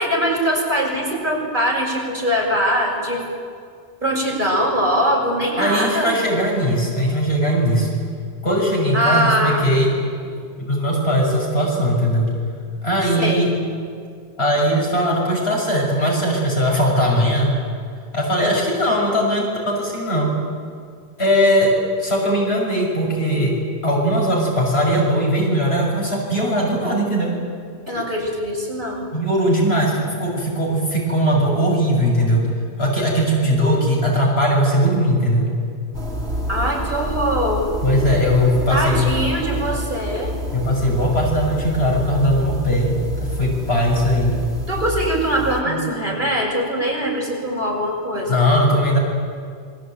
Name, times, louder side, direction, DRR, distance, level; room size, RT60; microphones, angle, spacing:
voice 1, 0.0-3.2 4.0-6.2 8.9-9.7 13.2-13.5 18.4-18.6 27.9-29.1 36.5-37.7 38.7-40.3 44.7-48.4, equal, 45° right, -2 dB, 6.6 m, -22 dB
voice 2, 5.6-7.9 8.4-9.9 10.2-12.3 12.8-13.5 14.4-17.6 18.1-20.3 21.2-23.6 23.8-27.4 29.1-32.5 32.8-35.5 37.8-39.0 40.5-42.9 43.2-44.3 45.6-45.8 48.3-49.0, equal, 65° left, -2 dB, 7.1 m, -19 dB
sound 1, 35.9-45.6, equal, 70° right, 2.7 m, -28 dB
27.5 x 22.5 x 9.1 m, 2.2 s
omnidirectional pair, 1.1 m